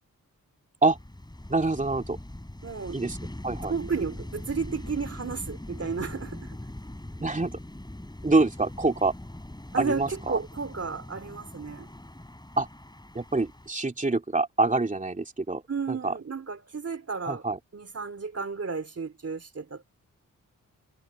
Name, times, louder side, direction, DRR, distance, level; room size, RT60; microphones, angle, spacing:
sound 1, 0.9-13.7, left 1 dB, 10° left, 6.4 m, -41 dB
voice 1, 1.5-2.2 2.9-3.2 3.4-3.7 7.2-7.6 8.2-9.1 9.8-10.4 12.6-12.7 13.1-15.6 15.9-16.1 17.3-17.6, right 3 dB, 20° right, 2.8 m, -25 dB
voice 2, 2.6-3.0 3.7-6.5 9.7-11.9 15.7-17.4 17.7-19.8, right 5 dB, 45° right, 2.9 m, -33 dB
cardioid pair, 75°, 34 cm